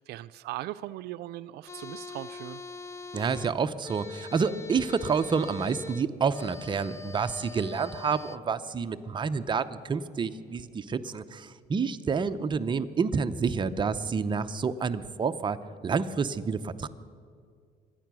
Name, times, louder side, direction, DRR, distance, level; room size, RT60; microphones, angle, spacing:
voice 1, 0.0-2.6, right 15 dB, 80° right, 14 dB, 0.4 m, -39 dB
sound 1, 1.7-8.4, left 4 dB, 15° left, 0.5 m, -43 dB
voice 2, 3.1-15.6 15.8-16.9, right 5 dB, 30° right, 9 dB, 0.7 m, -29 dB
24.0 x 9.2 x 6.2 m, 2.1 s
cardioid pair, 110°, 17 cm